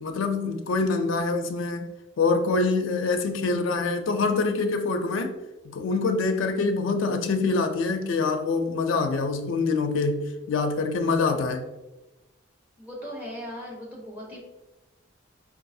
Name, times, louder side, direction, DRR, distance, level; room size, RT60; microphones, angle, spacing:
voice 1, 0.0-1.9 2.2-5.3 5.7-11.6, left 3 dB, 85° left, 5 dB, 0.4 m, -25 dB
voice 2, 12.8-14.4, equal, 10° right, -4 dB, 1.0 m, -38 dB
4.6 x 2.4 x 2.6 m, 1.0 s
head